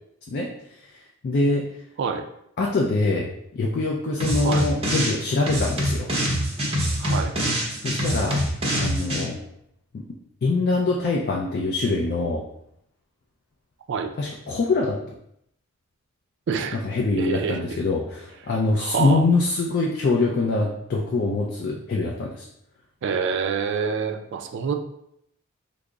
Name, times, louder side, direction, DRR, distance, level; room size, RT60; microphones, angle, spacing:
voice 1, 1.2-1.6 2.6-6.1 7.8-8.4 8.7-9.4 9.9-10.0 10.4-12.4 14.2-15.0 16.7-22.5, left 3 dB, 45° left, -1 dB, 0.4 m, -24 dB
sound 1, 4.2-5.2 5.5-9.2, equal, 25° right, 0.7 m, -25 dB
voice 2, 7.0-7.3 13.9-14.1 16.5-16.8 17.2-17.6 18.8-19.2 23.0-24.7, right 6 dB, 55° right, 6 dB, 0.3 m, -26 dB
3.4 x 2.0 x 3.7 m, 0.75 s
head